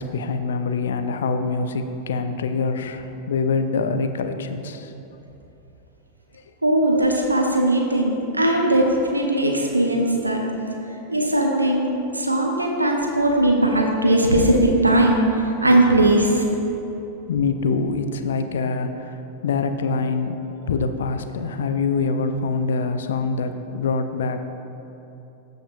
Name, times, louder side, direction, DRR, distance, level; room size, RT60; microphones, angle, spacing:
voice 1, 0.0-4.9 17.3-20.4 20.7-24.5, left 4 dB, 65° left, 8 dB, 0.5 m, -25 dB
voice 2, 6.6-10.4 11.1-11.9 12.1-16.4, right 1 dB, 80° right, 1 dB, 0.9 m, -19 dB
15.0 x 5.2 x 2.6 m, 3.0 s
figure-of-eight pair, 90°, 0 cm